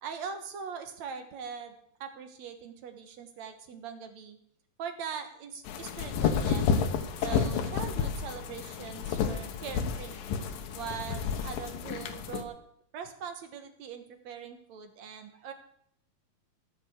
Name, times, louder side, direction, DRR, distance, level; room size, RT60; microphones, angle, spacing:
voice 1, 0.0-1.8 2.0-4.4 4.8-6.6 7.2-10.2 10.7-12.6 12.9-15.5, right 7 dB, 60° right, 7 dB, 2.3 m, -41 dB
sound 1, 5.7-12.4, left 6 dB, 80° left, 2.9 m, -31 dB
16.5 x 7.6 x 8.1 m, 0.68 s
omnidirectional pair, 4.0 m